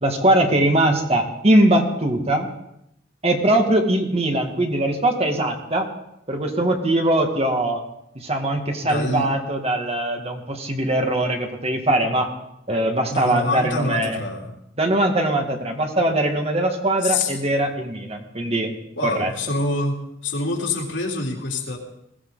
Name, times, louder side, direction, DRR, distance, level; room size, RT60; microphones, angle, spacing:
voice 1, 0.0-2.5 3.2-5.9 6.3-7.8 8.2-12.3 12.7-14.2 14.8-18.7 19.0-19.3, right 1 dB, 35° right, 3 dB, 1.9 m, -21 dB
voice 2, 8.8-9.3 13.1-14.5 17.0-17.3 19.0-20.0 20.2-21.8, left 2 dB, 80° left, -1 dB, 3.5 m, -25 dB
21.0 x 16.0 x 4.0 m, 0.80 s
head